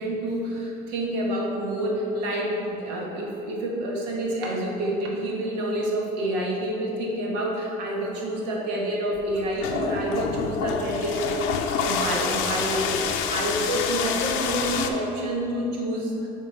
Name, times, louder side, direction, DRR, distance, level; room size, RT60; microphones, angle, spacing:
voice 1, 0.0-16.3, right 1 dB, 90° right, -2 dB, 1.0 m, -28 dB
sound 1, 9.2-14.9, left 7 dB, 75° left, 0.5 m, -28 dB
6.5 x 3.5 x 4.2 m, 3.0 s
supercardioid pair, 75°, 21 cm